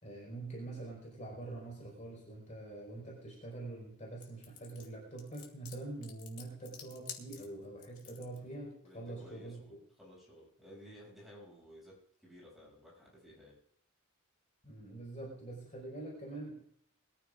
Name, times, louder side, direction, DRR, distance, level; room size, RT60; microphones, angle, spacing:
voice 1, 0.0-9.6 14.6-16.6, right 2 dB, 35° left, -3 dB, 4.9 m, -45 dB
sound 1, 4.2-8.4, left 8 dB, 75° left, 2.3 m, -50 dB
voice 2, 8.8-13.6, equal, ahead, -6 dB, 7.5 m, -55 dB
22.0 x 14.0 x 2.6 m, 0.67 s
head